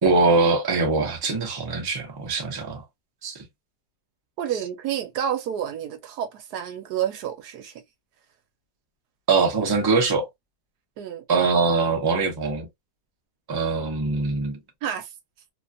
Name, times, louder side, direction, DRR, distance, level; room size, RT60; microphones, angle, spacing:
voice 1, 0.0-2.8 3.2-3.3 9.3-10.3 11.3-12.7 13.5-14.6, right 4 dB, 20° right, 0.6 m, -22 dB
voice 2, 4.4-7.8 11.0-11.2 14.8-15.1, right 9 dB, 80° right, 1.2 m, -29 dB
3.1 x 2.3 x 2.5 m
omnidirectional pair, 1.7 m